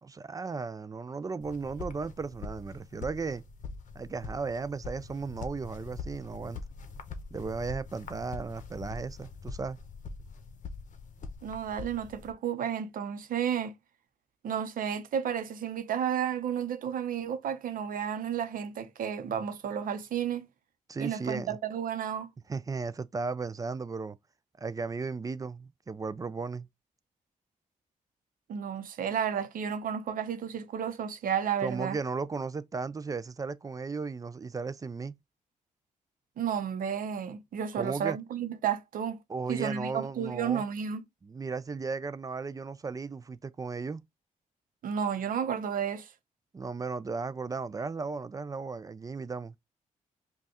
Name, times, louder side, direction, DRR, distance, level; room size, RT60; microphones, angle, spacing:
voice 1, 0.0-3.4 4.0-6.6 7.3-9.8 20.9-21.6 22.5-24.2 24.6-26.7 31.6-35.2 37.8-38.2 39.3-40.6 41.2-44.0 46.5-49.5, right 4 dB, 25° right, 0.3 m, -35 dB
sound 1, 1.4-12.3, left 4 dB, 65° left, 0.8 m, -43 dB
voice 2, 11.4-13.7 14.4-20.5 21.0-22.3 28.5-32.0 36.4-39.2 39.5-41.0 44.8-46.1, right 8 dB, 85° right, 0.7 m, -32 dB
5.3 x 2.3 x 2.8 m
cardioid pair, 110°, 14 cm